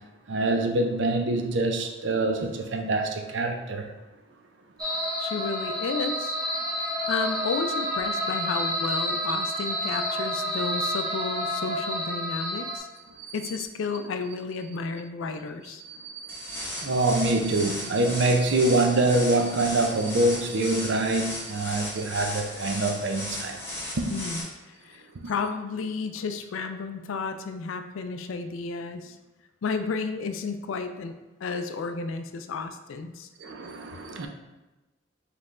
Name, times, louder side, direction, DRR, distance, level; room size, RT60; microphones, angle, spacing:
voice 1, 0.3-3.9 13.2-13.5 15.8-23.6 24.0-24.1 25.2-25.3 33.4-34.3, right 2 dB, 65° right, 4 dB, 0.5 m, -25 dB
sound 1, 4.8-12.8, equal, 20° right, 0.7 m, -29 dB
voice 2, 5.2-6.4 7.1-12.9 13.3-15.8 24.1-24.5 24.9-29.2 29.6-31.2 31.4-33.3, left 4 dB, 85° left, 8 dB, 0.4 m, -32 dB
sound 2, 16.3-24.4, left 1 dB, 10° left, 0.8 m, -36 dB
5.3 x 3.2 x 2.5 m, 1.1 s
head